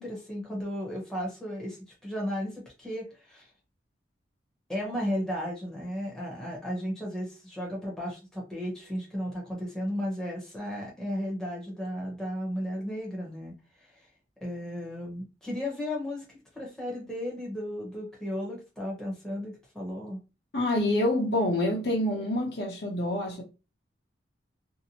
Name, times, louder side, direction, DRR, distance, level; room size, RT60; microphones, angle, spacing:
voice 1, 0.0-1.8 2.0-3.5 4.7-13.5 13.8-13.9 14.4-20.2, equal, 5° left, 0.8 m, -34 dB
voice 2, 20.5-23.4, left 1 dB, 60° left, 0.8 m, -27 dB
2.7 x 2.1 x 2.8 m
head